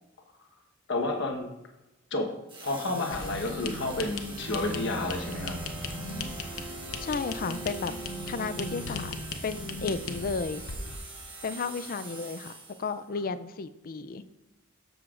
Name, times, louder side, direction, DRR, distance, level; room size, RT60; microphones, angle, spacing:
voice 1, 0.9-1.5 2.1-2.4 2.6-5.6, left 2 dB, 60° left, 4 dB, 1.2 m, -30 dB
sound 1, 2.5-13.0, right 3 dB, 25° right, 1.5 m, -44 dB
sound 2, 3.1-11.0, left 3 dB, 80° left, 0.9 m, -38 dB
Bowed string instrument, 4.4-9.3, right 2 dB, 5° left, 2.0 m, -42 dB
voice 2, 7.0-7.9 8.3-9.2 9.4-10.6 11.4-12.5 12.8-14.3, left 4 dB, 45° left, 14 dB, 0.4 m, -33 dB
13.0 x 6.8 x 2.5 m, 0.98 s
head